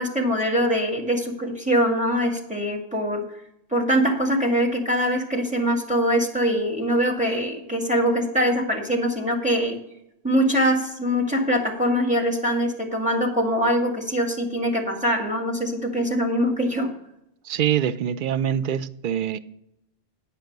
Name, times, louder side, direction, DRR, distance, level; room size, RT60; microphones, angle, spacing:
voice 1, 0.0-3.2 3.7-9.8 10.2-16.9, equal, 5° right, 2 dB, 1.9 m, -23 dB
voice 2, 17.4-19.4, right 9 dB, 55° right, 14 dB, 0.6 m, -24 dB
10.0 x 5.6 x 7.9 m, 0.80 s
omnidirectional pair, 1.3 m